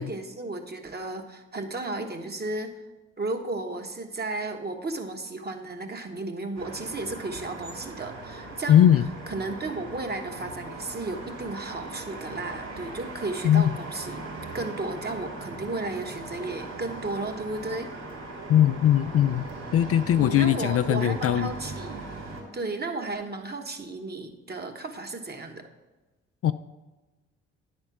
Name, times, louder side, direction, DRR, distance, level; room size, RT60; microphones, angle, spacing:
voice 1, 0.0-2.7 3.2-8.8 9.3-14.2 14.5-17.9 20.2-22.0 22.5-25.6, right 2 dB, 30° right, 5 dB, 1.3 m, -34 dB
sound 1, 6.5-22.4, right 2 dB, 55° right, 3.1 m, -39 dB
voice 2, 8.7-9.1 13.4-13.7 18.5-19.4 19.7-21.5 26.4-26.5, left 10 dB, 50° left, 10 dB, 0.4 m, -20 dB
9.8 x 4.4 x 6.1 m, 1.1 s
hypercardioid pair, 50°, 31 cm